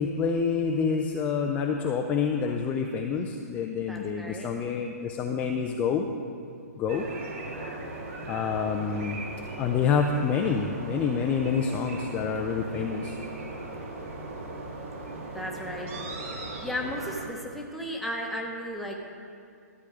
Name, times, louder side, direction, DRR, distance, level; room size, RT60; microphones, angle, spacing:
voice 1, 0.0-6.1 6.8-7.1 7.6-7.7 8.3-9.2 9.5-13.2, left 6 dB, 15° left, 2 dB, 0.5 m, -27 dB
voice 2, 3.9-4.5 15.3-16.0 16.6-19.2, equal, ahead, -2 dB, 1.1 m, -35 dB
sound 1, 6.9-17.2, right 2 dB, 50° right, 2.2 m, -38 dB
13.0 x 8.4 x 5.0 m, 2.3 s
hypercardioid pair, 145°, 9 cm